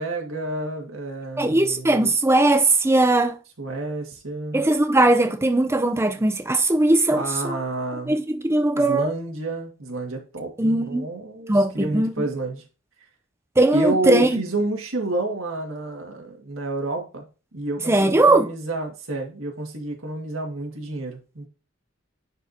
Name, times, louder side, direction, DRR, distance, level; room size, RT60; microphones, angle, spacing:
voice 1, 0.0-2.1 3.6-4.6 7.1-8.2 8.7-12.6 13.7-17.2 17.5-21.5, right 2 dB, 85° right, 2.0 m, -29 dB
voice 2, 1.4-3.4 4.5-7.6 8.1-9.1 10.6-11.1 11.5-12.1 13.6-14.4 17.9-18.5, right 2 dB, 15° right, 0.6 m, -19 dB
10.0 x 4.5 x 2.8 m
head